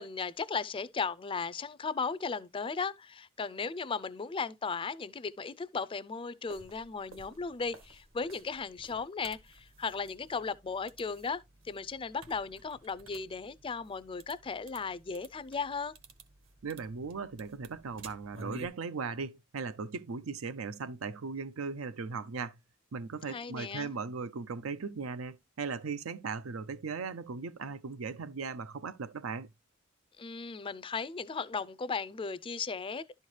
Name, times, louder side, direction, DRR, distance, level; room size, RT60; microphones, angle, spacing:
voice 1, 0.0-15.9 23.3-23.9 30.2-33.0, left 5 dB, 25° left, 0.4 m, -36 dB
sound 1, 6.5-18.7, right 1 dB, 65° right, 1.4 m, -52 dB
voice 2, 16.6-22.6 22.9-29.5, right 5 dB, 85° right, 0.5 m, -38 dB
11.5 x 4.4 x 3.2 m
head